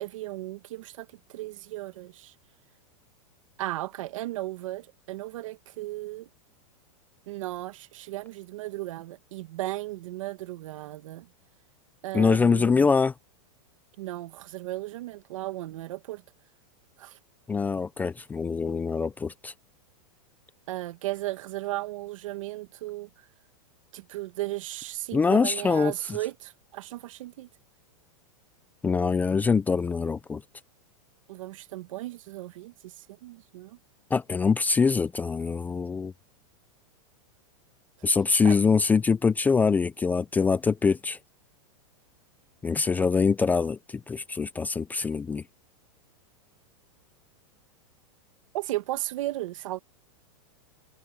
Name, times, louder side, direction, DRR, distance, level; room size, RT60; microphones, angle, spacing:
voice 1, 0.0-2.3 3.6-6.3 7.3-11.3 12.0-12.9 14.0-16.2 17.0-17.2 20.7-23.1 23.9-27.5 31.3-33.8 38.4-38.6 48.5-49.8, right 17 dB, 65° right, 1.7 m, -35 dB
voice 2, 12.1-13.1 17.5-19.5 25.1-25.9 28.8-30.4 34.1-36.1 38.0-41.2 42.6-43.8 44.1-45.4, left 5 dB, 10° left, 0.5 m, -24 dB
supercardioid pair, 150°, 18 cm